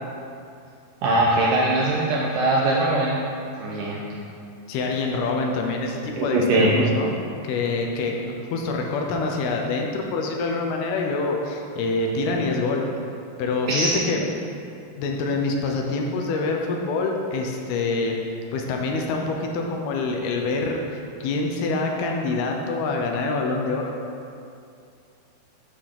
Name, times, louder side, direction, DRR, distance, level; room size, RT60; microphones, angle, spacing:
voice 1, 1.0-3.2 3.6-4.0 6.2-6.7 13.7-13.9, right 2 dB, 80° right, -4 dB, 2.0 m, -21 dB
voice 2, 4.7-7.1 7.4-12.8 13.4-14.2 15.0-18.2 18.5-20.8 21.2-23.9, left 3 dB, 80° left, 1 dB, 2.7 m, -26 dB
8.5 x 3.8 x 6.6 m, 2.5 s
omnidirectional pair, 4.6 m